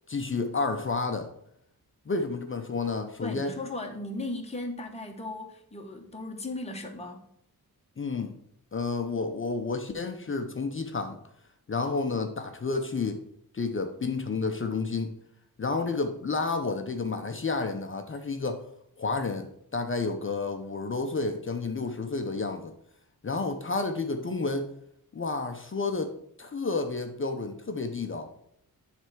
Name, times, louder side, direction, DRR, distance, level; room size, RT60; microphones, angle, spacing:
voice 1, 0.1-1.3 2.1-3.5 8.0-8.3 8.7-11.2 11.7-13.2 13.5-15.2 15.6-18.6 19.0-22.7 23.2-24.7 25.1-26.1 26.4-28.3, left 3 dB, 35° left, 6 dB, 0.6 m, -30 dB
voice 2, 3.2-7.3, left 2 dB, 15° left, 2 dB, 1.1 m, -37 dB
7.3 x 3.4 x 6.1 m, 0.71 s
wide cardioid pair, 135°, 37 cm